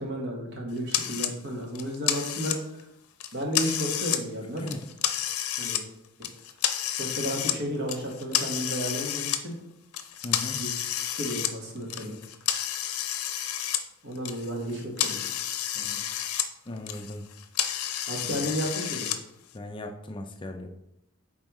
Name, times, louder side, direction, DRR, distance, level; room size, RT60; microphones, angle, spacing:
voice 1, 0.0-2.8 3.3-4.7 5.6-5.8 7.0-9.5 10.6-10.8 11.2-12.2 14.0-15.2 15.6-16.0 18.1-19.1, equal, 55° right, 0 dB, 1.4 m, -33 dB
sound 1, 0.9-1.3 1.7-2.8 3.2-4.2 4.6-5.8 6.2-7.6 7.9-9.4 9.9-13.8 14.1-16.5 16.8-19.2, left 10 dB, 90° left, 0.5 m, -30 dB
voice 2, 10.2-10.6 16.7-17.2 18.2-18.4 19.5-20.7, left 1 dB, 20° left, 4 dB, 0.4 m, -37 dB
7.2 x 4.4 x 3.1 m, 0.83 s
head